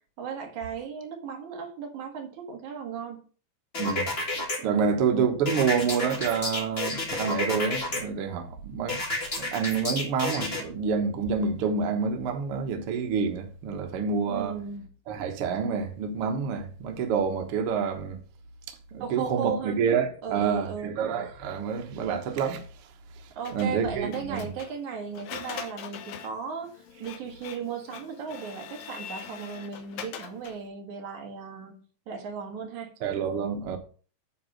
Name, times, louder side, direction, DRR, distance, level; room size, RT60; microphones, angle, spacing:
voice 1, 0.2-3.2 4.6-4.9 14.3-14.9 19.0-19.8 20.2-21.0 23.4-32.9, right 6 dB, 60° right, 2.6 m, -36 dB
sound 1, 3.7-4.6 5.4-8.0 8.9-10.6, left 2 dB, 30° left, 1.1 m, -30 dB
voice 2, 4.6-9.0 9.4-14.5 15.1-18.2 18.9-22.6 23.5-24.4 33.0-33.8, right 6 dB, 85° right, 1.2 m, -28 dB
Printer, 23.4-30.7, left 8 dB, 85° left, 1.6 m, -43 dB
9.4 x 4.3 x 6.5 m
omnidirectional pair, 4.5 m